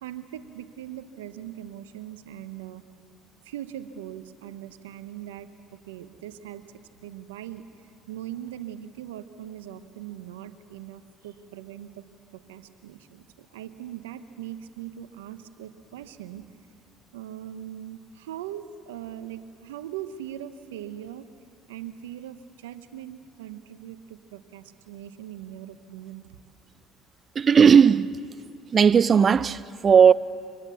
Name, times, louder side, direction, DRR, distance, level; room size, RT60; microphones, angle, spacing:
voice 1, 0.0-2.8 3.4-5.5 5.9-12.0 12.3-16.5 17.1-21.3 21.7-26.4, right 11 dB, 90° right, 1.0 m, -40 dB
voice 2, 27.4-28.2 28.7-30.1, right 7 dB, 40° right, 0.5 m, -16 dB
25.5 x 20.0 x 7.1 m
hypercardioid pair, 70°, 0 cm